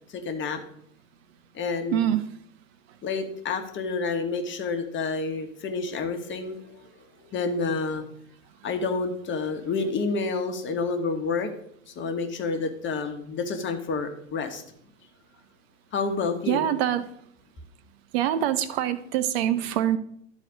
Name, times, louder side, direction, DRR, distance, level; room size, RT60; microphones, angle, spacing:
voice 1, 0.1-0.6 1.5-2.2 3.0-6.8 7.2-8.0 8.6-11.5 11.9-14.6 15.9-16.7, left 4 dB, 30° left, 6 dB, 1.4 m, -29 dB
voice 2, 16.5-17.1 18.1-20.0, right 11 dB, 50° right, 13 dB, 0.7 m, -24 dB
12.0 x 4.2 x 5.0 m, 0.69 s
hypercardioid pair, 100°, 40 cm